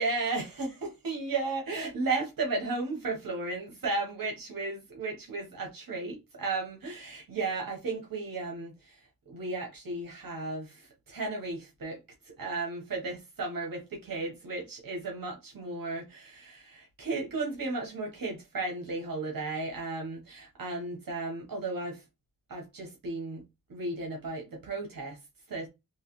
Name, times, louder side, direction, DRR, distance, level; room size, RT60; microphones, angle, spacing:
voice 1, 0.0-12.0 12.2-22.0 22.5-23.4 23.7-25.2 25.5-25.7, right 3 dB, 80° right, 1.2 m, -34 dB
3.2 x 3.1 x 3.0 m
wide cardioid pair, 110°, 34 cm